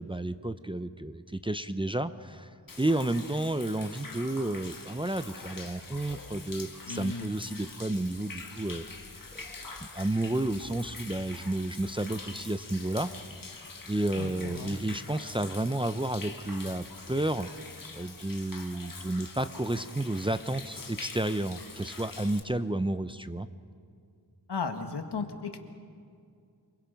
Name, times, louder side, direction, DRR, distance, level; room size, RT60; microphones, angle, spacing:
voice 1, 0.0-2.5 2.8-8.8 9.3-9.5 9.8-13.1 13.4-17.5 17.9-23.5, right 1 dB, 15° right, 11 dB, 0.6 m, -31 dB
Human voice / Rain / Stream, 2.7-22.4, left 3 dB, 55° left, 1.8 m, -45 dB
voice 2, 6.9-7.3 14.2-14.8 24.5-25.6, left 4 dB, 80° left, 6 dB, 1.7 m, -35 dB
28.5 x 21.5 x 5.2 m, 2.3 s
wide cardioid pair, 90°, 40 cm